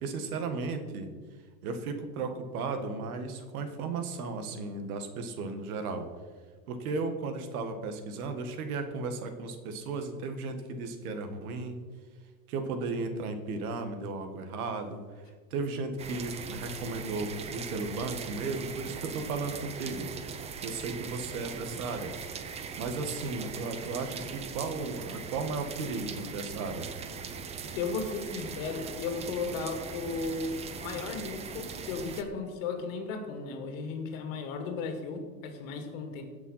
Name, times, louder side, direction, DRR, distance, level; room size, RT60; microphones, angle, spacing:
voice 1, 0.0-1.1 1.6-6.1 6.7-11.8 12.5-15.0 15.5-20.1 20.6-22.1 22.8-26.9, right 3 dB, 85° right, 7 dB, 1.9 m, -35 dB
sound 1, 16.0-32.2, right 6 dB, 15° right, 0.5 m, -40 dB
voice 2, 27.7-36.2, left 4 dB, 65° left, 5 dB, 2.4 m, -35 dB
16.5 x 6.0 x 5.7 m, 1.5 s
supercardioid pair, 150°, 42 cm